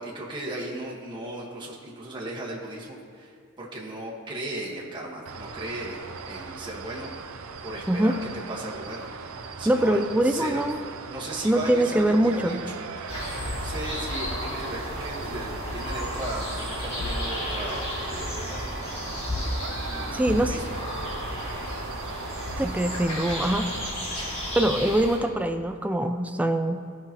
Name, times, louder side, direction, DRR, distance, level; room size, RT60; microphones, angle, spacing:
voice 1, 0.0-7.1 7.6-8.2 8.5-9.1 9.6-10.7 11.1-17.8 18.1-20.8 24.2-24.3, right 2 dB, 25° right, -4 dB, 1.4 m, -37 dB
sound 1, 5.3-23.9, right 5 dB, 90° right, 0.5 m, -39 dB
voice 2, 9.7-10.8 11.4-12.6 20.1-20.5 22.6-23.7 24.6-26.8, right 1 dB, 5° right, 6 dB, 0.3 m, -23 dB
sound 2, 13.1-25.2, left 1 dB, 30° left, 1.8 m, -32 dB
15.0 x 5.8 x 2.9 m, 2.1 s
head